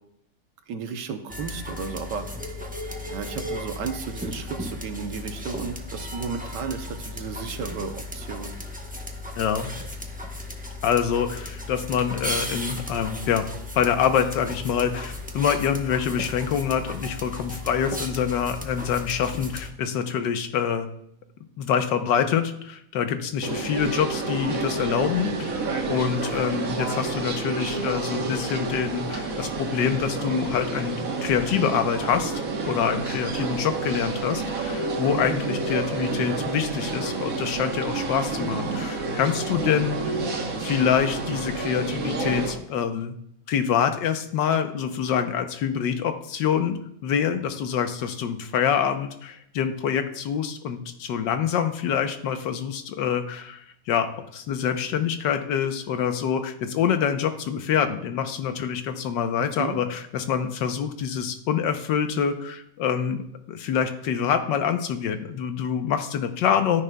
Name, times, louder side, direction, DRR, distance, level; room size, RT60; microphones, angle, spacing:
voice 1, 0.7-2.3 3.0-8.5 26.2-26.6 35.7-35.8 59.6-59.8, right 6 dB, 75° right, 7 dB, 1.5 m, -33 dB
sound 1, 1.3-19.7, left 1 dB, 10° right, 0.4 m, -35 dB
voice 2, 9.4-9.7 10.8-13.5 13.7-20.9 21.6-40.2 40.6-43.1 43.5-46.8 47.0-63.2 63.5-66.8, left 8 dB, 85° left, 8 dB, 1.5 m, -26 dB
sound 2, 23.4-42.5, right 3 dB, 55° right, 1.5 m, -29 dB
13.0 x 10.0 x 2.2 m, 0.73 s
omnidirectional pair, 1.9 m